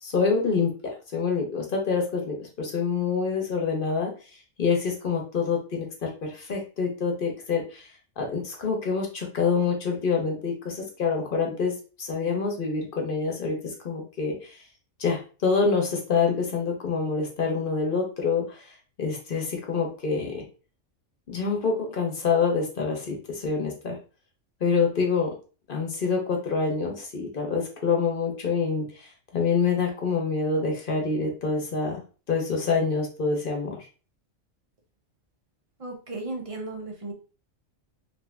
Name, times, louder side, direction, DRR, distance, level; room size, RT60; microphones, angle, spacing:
voice 1, 0.0-4.1 4.6-7.9 8.2-14.6 15.0-20.4 21.3-23.9 24.6-25.3 25.7-32.0 32.3-33.8, left 5 dB, 50° left, 1 dB, 0.8 m, -26 dB
voice 2, 35.8-37.1, right 2 dB, 45° right, 2 dB, 0.4 m, -35 dB
2.8 x 2.5 x 3.2 m, 0.35 s
omnidirectional pair, 1.3 m